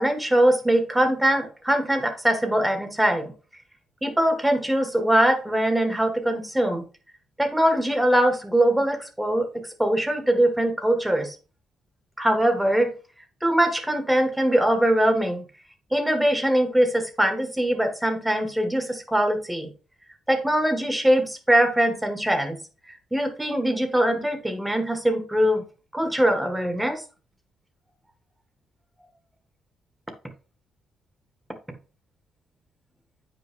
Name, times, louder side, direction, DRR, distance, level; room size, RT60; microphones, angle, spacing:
voice 1, 0.0-3.3 4.0-6.8 7.4-11.3 12.2-12.9 13.4-15.4 15.9-19.7 20.3-22.6 23.1-25.6 25.9-27.0, right 1 dB, 5° right, 6 dB, 1.8 m, -22 dB
8.9 x 5.5 x 3.7 m, 0.36 s
cardioid pair, 90°, 0 cm